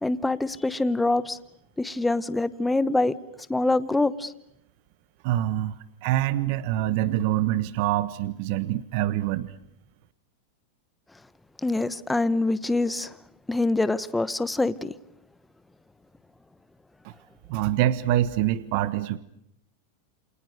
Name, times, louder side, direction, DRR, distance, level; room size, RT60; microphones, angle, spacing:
voice 1, 0.0-1.4 1.8-3.1 3.5-4.3 11.6-13.1 13.5-14.9, left 2 dB, 5° left, 1.0 m, -25 dB
voice 2, 5.2-9.5 17.0-17.1 17.5-19.2, right 13 dB, 55° right, 1.3 m, -25 dB
29.0 x 27.5 x 6.6 m
supercardioid pair, 145°, 0 cm